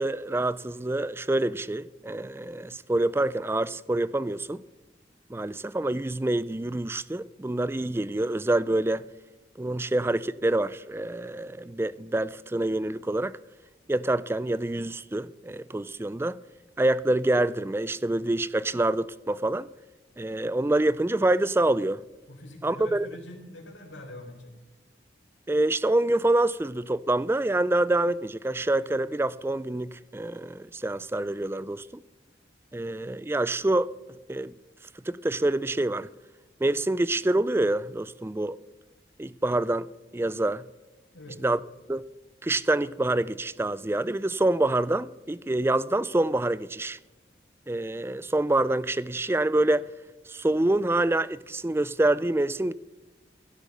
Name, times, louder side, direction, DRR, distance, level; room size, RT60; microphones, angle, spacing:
voice 1, 0.0-4.6 5.3-9.1 9.6-13.4 13.9-16.4 16.8-19.7 20.2-22.0 22.6-23.1 25.5-32.0 32.7-33.9 34.3-34.5 35.0-36.1 36.6-38.6 39.2-39.9 40.1-40.6 41.4-41.6 41.9-42.0 42.4-47.0 47.7-49.9 50.3-52.7, right 2 dB, 15° right, 0.3 m, -26 dB
voice 2, 22.3-24.5 41.1-41.5, left 1 dB, 80° left, 4.0 m, -43 dB
16.0 x 8.4 x 6.6 m
head